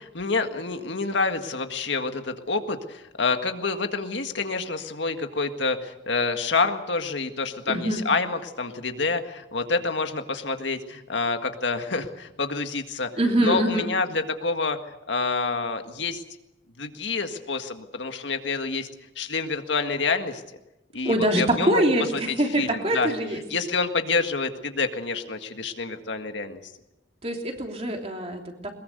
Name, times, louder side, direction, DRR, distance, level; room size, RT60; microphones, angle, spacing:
voice 1, 0.0-13.1 13.4-16.2 16.8-18.9 19.2-20.4 20.9-21.8 22.1-23.1 23.5-26.7, left 4 dB, 75° left, 6 dB, 1.8 m, -28 dB
voice 2, 7.7-8.0 13.2-13.9 21.0-23.4 27.2-28.8, right 1 dB, 30° right, 2 dB, 3.2 m, -24 dB
22.0 x 21.5 x 6.8 m, 0.92 s
head